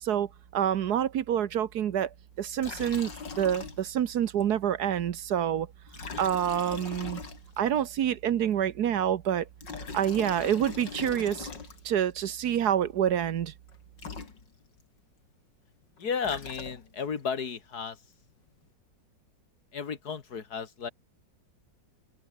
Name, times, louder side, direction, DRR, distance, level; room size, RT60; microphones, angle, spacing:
voice 1, 0.0-2.1 2.4-3.1 3.4-5.7 6.2-7.2 7.6-9.5 9.9-11.5 11.8-13.5, right 10 dB, 65° right, 1.4 m, -27 dB
Liquid, 2.6-4.1 4.4-4.5 5.9-7.8 9.4-12.1 13.7-13.8 14.0-14.8 16.0-17.1, left 4 dB, 85° left, 4.0 m, -41 dB
voice 2, 16.0-18.0 19.7-20.9, left 6 dB, 65° left, 2.3 m, -33 dB
open air
omnidirectional pair, 1.9 m